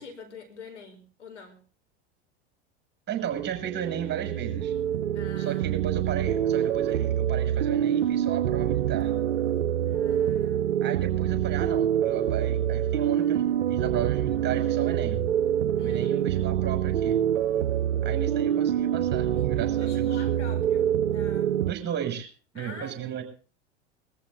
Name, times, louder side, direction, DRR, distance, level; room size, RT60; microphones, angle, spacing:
voice 1, 0.0-1.6 5.1-5.8 9.8-10.8 15.8-16.6 19.3-21.6 22.5-23.0, left 4 dB, 85° left, 4.9 m, -46 dB
voice 2, 3.1-4.8 5.4-9.1 10.8-15.2 15.8-17.2 18.0-20.2 21.6-22.3 22.5-23.2, right 10 dB, 30° right, 6.3 m, -34 dB
sound 1, 3.4-21.7, right 10 dB, 80° right, 0.6 m, -26 dB
21.5 x 14.0 x 4.0 m
hypercardioid pair, 85°, 35 cm